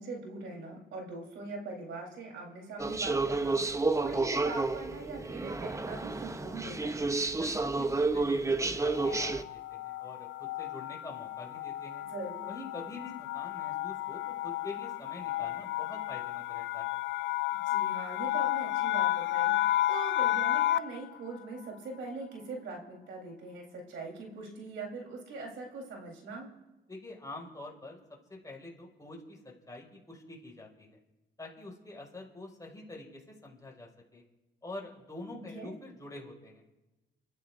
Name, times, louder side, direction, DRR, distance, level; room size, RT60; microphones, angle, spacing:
voice 1, 0.0-3.6 4.0-7.1 12.1-12.5 17.5-26.5 35.3-35.7, right 3 dB, 80° right, 0 dB, 3.9 m, -42 dB
sound 1, 2.8-9.4, right 3 dB, 15° right, 0.7 m, -30 dB
voice 2, 7.3-12.0 12.5-17.0 26.9-28.0 28.3-31.0 31.4-34.2 34.6-36.6, left 2 dB, 15° left, -2 dB, 5.3 m, -46 dB
sound 2, 9.0-21.1, left 15 dB, 70° left, 0.4 m, -32 dB
29.0 x 14.5 x 2.6 m, 1.1 s
cardioid pair, 90°, 20 cm